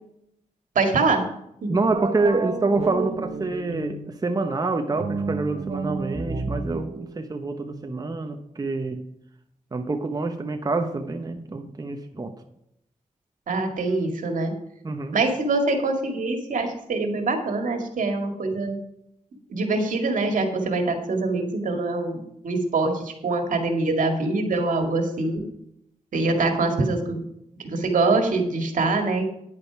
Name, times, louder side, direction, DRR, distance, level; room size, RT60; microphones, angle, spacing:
voice 1, 0.8-1.2 1.6-1.7 13.5-14.5 15.1-18.8 19.5-25.4 26.1-27.2 27.6-29.3, right 3 dB, 80° right, 4 dB, 2.1 m, -24 dB
voice 2, 1.7-9.1 9.7-12.3 14.8-15.2, right 3 dB, 30° right, 5 dB, 1.0 m, -26 dB
sound 1, 1.9-4.2 4.9-8.3, right 4 dB, 50° right, 1.1 m, -32 dB
10.5 x 8.7 x 4.8 m, 0.77 s
wide cardioid pair, 95°, 13 cm